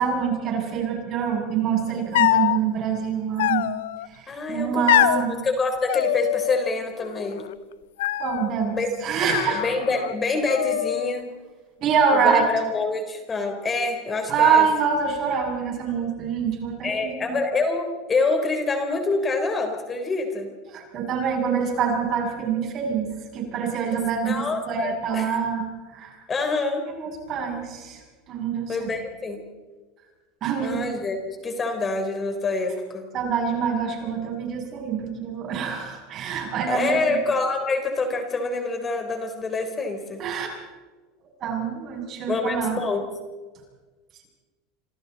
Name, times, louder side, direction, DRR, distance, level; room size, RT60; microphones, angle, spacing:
voice 1, 0.0-3.7 4.2-5.3 8.2-9.6 11.8-12.4 14.3-17.4 20.7-25.6 25.9-26.2 27.0-28.0 28.3-28.9 30.4-30.9 33.1-37.2 40.2-40.5 41.4-42.8, right 6 dB, 45° right, 1 dB, 7.4 m, -25 dB
sound 1, 2.1-2.6 3.4-4.1 4.9-5.3 5.9-6.7 7.0-7.5 8.0-8.5 9.2-10.1 10.5-11.2, left 14 dB, 85° left, 0.7 m, -24 dB
voice 2, 4.3-4.9 5.4-7.5 8.7-8.9 9.5-11.2 12.1-14.7 16.8-20.5 24.3-25.4 26.3-26.8 28.7-29.4 30.6-31.2 31.4-33.1 36.7-40.2 42.3-43.0, left 3 dB, 25° left, 5 dB, 3.9 m, -26 dB
26.5 x 26.0 x 4.2 m, 1.3 s
supercardioid pair, 110°, 0 cm